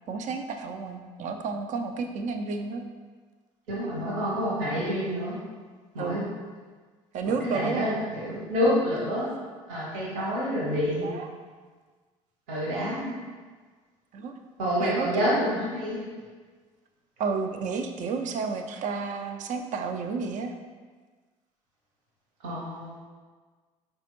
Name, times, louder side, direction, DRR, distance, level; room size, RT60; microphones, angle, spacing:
voice 1, 0.1-2.8 6.0-6.3 7.1-8.0 11.0-11.3 14.1-14.3 14.8-15.4 17.2-20.5, right 4 dB, 50° right, 5 dB, 0.4 m, -31 dB
voice 2, 3.7-5.4 5.9-6.2 7.3-9.3 9.7-11.1 12.5-13.1 14.6-16.0 22.4-23.0, equal, 75° right, -6 dB, 1.2 m, -28 dB
4.0 x 3.4 x 3.0 m, 1.5 s
hypercardioid pair, 60°, 16 cm